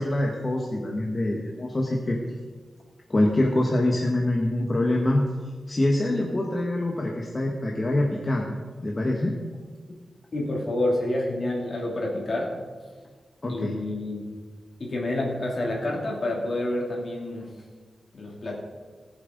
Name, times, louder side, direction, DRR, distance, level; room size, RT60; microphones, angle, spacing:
voice 1, 0.0-2.2 3.1-5.2 5.7-9.3 13.4-13.8, left 1 dB, 25° left, -1 dB, 1.1 m, -25 dB
voice 2, 10.3-12.5 13.5-14.3 14.8-17.5 18.1-18.6, left 1 dB, 45° left, -2 dB, 2.7 m, -28 dB
18.5 x 7.5 x 3.8 m, 1.5 s
wide cardioid pair, 165°, 0 cm